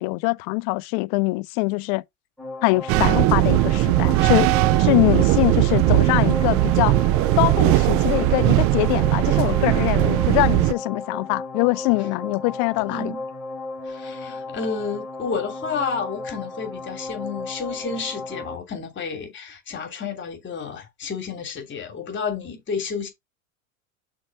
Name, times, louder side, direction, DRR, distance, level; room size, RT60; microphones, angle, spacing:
voice 1, 0.0-2.0 2.6-7.0 7.4-13.1, left 26 dB, 50° left, 0.7 m, -23 dB
sound 1, 2.4-18.6, left 3 dB, ahead, 4.3 m, -35 dB
sound 2, 2.9-10.7, right 17 dB, 35° right, 0.4 m, -19 dB
voice 2, 12.9-13.2 13.9-23.1, left 5 dB, 30° left, 3.2 m, -31 dB
6.2 x 4.5 x 5.0 m
hypercardioid pair, 110°, 39 cm